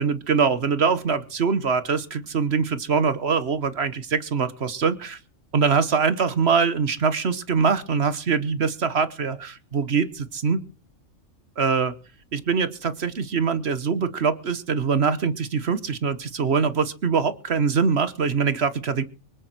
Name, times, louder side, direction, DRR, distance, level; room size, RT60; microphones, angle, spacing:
voice 1, 0.0-5.2 5.5-10.6 11.6-11.9 12.3-19.0, right 5 dB, 55° right, 13 dB, 1.3 m, -23 dB
24.5 x 8.9 x 4.4 m, 0.37 s
omnidirectional pair, 1.4 m